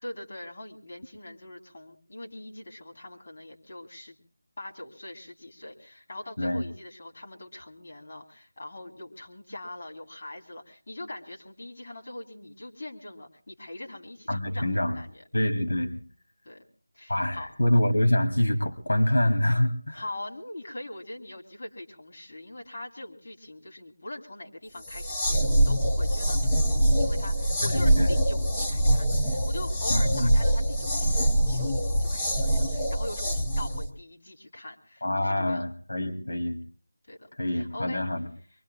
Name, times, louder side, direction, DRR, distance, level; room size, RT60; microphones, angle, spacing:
voice 1, 0.0-4.2 4.6-15.2 16.4-16.7 16.9-17.5 19.9-35.7 37.1-38.0, left 1 dB, 45° left, 0 dB, 2.6 m, -42 dB
voice 2, 14.3-15.0 15.3-16.0 17.1-20.0 27.6-28.1 29.9-30.3 35.0-36.6 37.4-38.3, left 1 dB, 70° left, 4 dB, 2.4 m, -26 dB
sound 1, 24.8-33.9, right 1 dB, 10° left, 0.9 m, -24 dB
25.0 x 23.5 x 2.3 m, 0.41 s
figure-of-eight pair, 170°, 0 cm